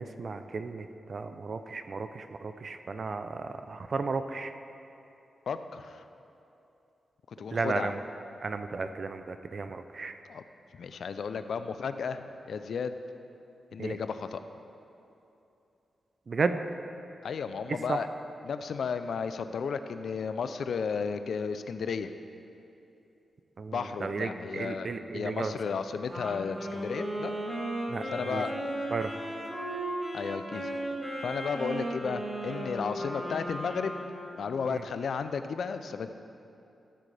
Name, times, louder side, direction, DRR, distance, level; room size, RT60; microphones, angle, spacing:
voice 1, 0.0-4.5 7.5-8.0 8.4-10.1 13.8-13.9 16.3-16.6 17.9-18.0 23.6-23.8 24.0-25.5 27.9-28.0 28.3-28.4 28.9-29.1 34.7-34.8, right 4 dB, 50° right, 9 dB, 0.4 m, -33 dB
voice 2, 5.5-6.0 7.3-7.9 10.3-10.4 10.7-13.0 13.7-14.4 17.2-18.1 18.4-22.1 23.7-27.3 28.0-28.5 30.1-30.7 31.2-33.9 34.4-36.1, left 5 dB, 75° left, 10 dB, 0.4 m, -33 dB
Wind instrument woodwind instrument, 26.1-34.4, right 1 dB, 20° right, 2.4 m, -36 dB
13.0 x 7.6 x 3.3 m, 2.8 s
cardioid pair, 85°, 0 cm